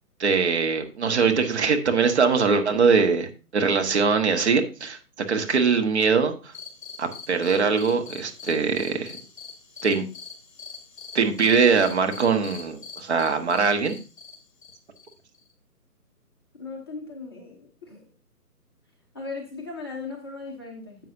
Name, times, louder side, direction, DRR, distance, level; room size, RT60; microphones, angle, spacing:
voice 1, 0.2-5.0 5.3-6.5 7.0-9.2 9.8-10.0 11.1-13.9, right 5 dB, 45° right, 5 dB, 1.3 m, -22 dB
sound 1, 6.5-15.5, left 5 dB, 30° left, 2.5 m, -43 dB
voice 2, 16.6-18.1 19.1-21.0, left 4 dB, 15° left, -1 dB, 0.7 m, -37 dB
9.9 x 7.5 x 2.7 m, 0.34 s
figure-of-eight pair, 145°, 47 cm